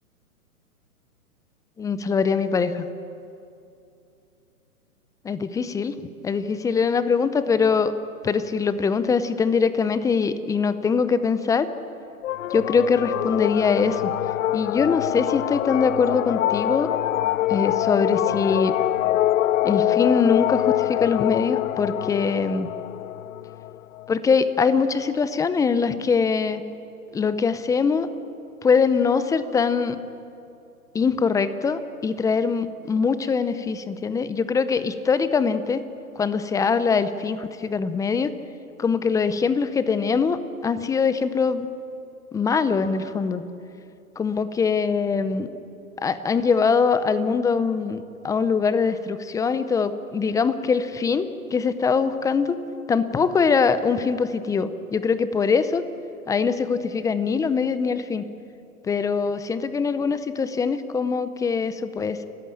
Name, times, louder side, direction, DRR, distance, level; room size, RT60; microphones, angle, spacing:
voice 1, 1.8-2.8 5.2-6.0 6.2-7.9 8.2-11.7 12.5-14.1 14.5-16.9 17.5-18.7 19.6-22.7 24.1-26.6 27.1-28.1 28.6-30.0 30.9-35.8 36.2-38.3 38.8-41.7 42.3-43.4 44.2-45.5 46.0-52.6 52.9-55.8 56.3-58.2 58.8-62.2, left 5 dB, 10° left, 13 dB, 0.6 m, -22 dB
sound 1, 12.2-24.1, left 13 dB, 60° left, 0.5 m, -25 dB
30.0 x 14.5 x 8.8 m, 2.7 s
hypercardioid pair, 120°, 44 cm